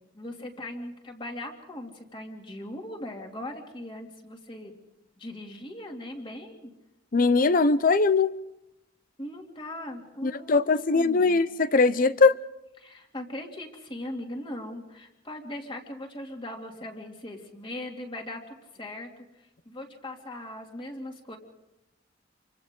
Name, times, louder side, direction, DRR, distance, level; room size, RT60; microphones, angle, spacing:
voice 1, 0.1-4.7 5.2-6.7 9.2-11.4 12.8-19.2 19.6-21.4, left 1 dB, 25° left, 2.7 m, -39 dB
voice 2, 7.1-8.3 10.2-12.3, left 4 dB, 45° left, 0.7 m, -21 dB
28.0 x 25.0 x 3.8 m
head